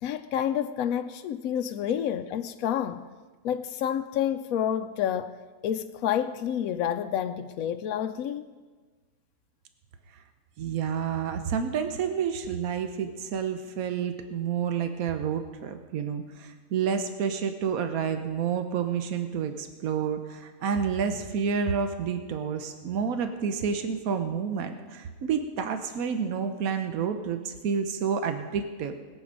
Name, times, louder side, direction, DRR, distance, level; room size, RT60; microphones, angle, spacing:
voice 1, 0.0-3.1 3.4-5.4 5.6-8.4, left 9 dB, 80° left, 1.0 m, -29 dB
voice 2, 10.6-28.9, right 7 dB, 80° right, 1.3 m, -29 dB
20.5 x 7.9 x 5.2 m
omnidirectional pair, 1.5 m